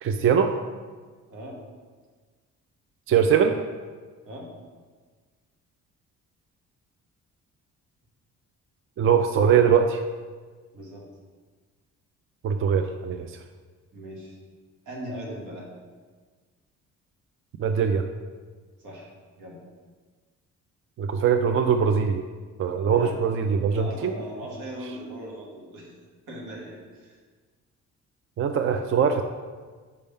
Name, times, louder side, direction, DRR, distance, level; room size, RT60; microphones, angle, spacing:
voice 1, 0.0-0.5 3.1-3.6 9.0-10.0 12.4-13.4 17.6-18.1 21.0-22.2 22.6-24.1 28.4-29.2, right 7 dB, 45° right, 6 dB, 0.4 m, -22 dB
voice 2, 10.7-11.0 13.9-14.4 14.8-15.7 18.8-19.1 19.4-19.6 22.8-23.2 23.7-26.0 26.3-27.2, equal, 85° right, -2 dB, 1.6 m, -39 dB
5.5 x 3.5 x 5.5 m, 1.5 s
cardioid pair, 90°, 30 cm